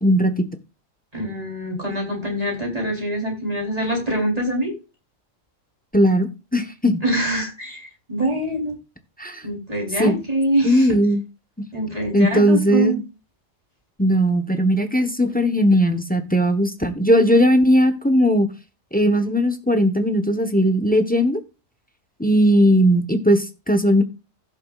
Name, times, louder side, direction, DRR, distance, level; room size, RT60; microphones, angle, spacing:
voice 1, 0.0-0.5 5.9-7.0 9.2-9.4 10.0-10.2 10.6-11.2 12.1-13.0 14.0-18.5 18.9-21.4 22.2-24.0, equal, 5° left, 8 dB, 1.0 m, -18 dB
voice 2, 1.1-4.7 7.0-8.8 9.4-11.0 11.7-12.9, right 1 dB, 30° right, 0 dB, 3.8 m, -24 dB
16.5 x 6.8 x 2.4 m, 0.30 s
omnidirectional pair, 1.4 m